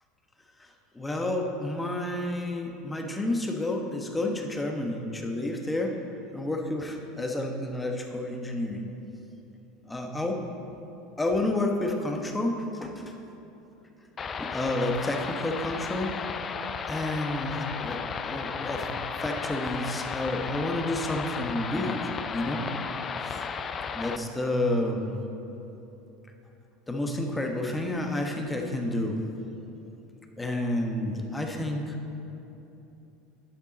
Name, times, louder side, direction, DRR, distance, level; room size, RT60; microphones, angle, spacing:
voice 1, 0.9-6.0 6.3-8.8 9.9-10.4 11.2-13.1 14.4-16.1 16.9-18.9 19.2-22.7 23.2-23.4 23.9-25.2 26.9-29.2 30.4-32.0, left 1 dB, 15° left, 3 dB, 1.1 m, -30 dB
sound 1, 14.2-24.2, left 5 dB, 35° left, 0.4 m, -34 dB
11.0 x 7.4 x 4.2 m, 3.0 s
hypercardioid pair, 80°, 0 cm